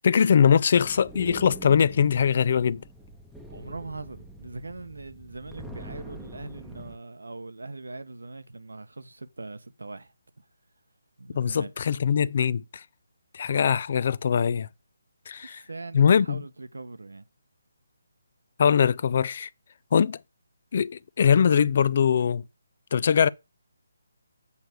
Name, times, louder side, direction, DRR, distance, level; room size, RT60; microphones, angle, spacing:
voice 1, 0.0-2.8 11.3-12.8 13.3-14.7 15.3-15.6 15.9-16.4 18.6-19.5 19.9-20.2 20.7-22.4 22.9-23.3, left 7 dB, 45° left, 0.3 m, -22 dB
sound 1, 0.7-7.0, right 1 dB, ahead, 0.9 m, -44 dB
voice 2, 3.5-10.4 11.2-11.7 15.4-17.3, right 3 dB, 80° right, 0.9 m, -41 dB
8.2 x 3.3 x 6.4 m
figure-of-eight pair, 150°, 0 cm